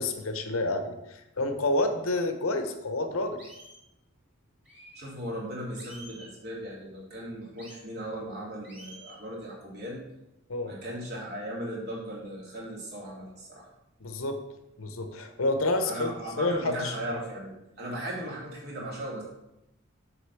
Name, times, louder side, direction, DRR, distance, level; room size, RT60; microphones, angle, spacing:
voice 1, 0.0-3.4 10.5-10.7 14.0-14.4 14.8-16.1 16.4-16.9, left 2 dB, 85° left, 7 dB, 1.0 m, -29 dB
sound 1, 2.1-2.2 2.7-2.8 3.4-3.8 4.6-5.1 5.8-6.3 7.6-7.8 8.6-9.2, right 1 dB, 5° right, 2.2 m, -49 dB
voice 2, 4.9-10.0 10.6-13.7 15.9-19.2, equal, 50° right, -4 dB, 3.1 m, -37 dB
8.0 x 4.0 x 6.9 m, 0.89 s
head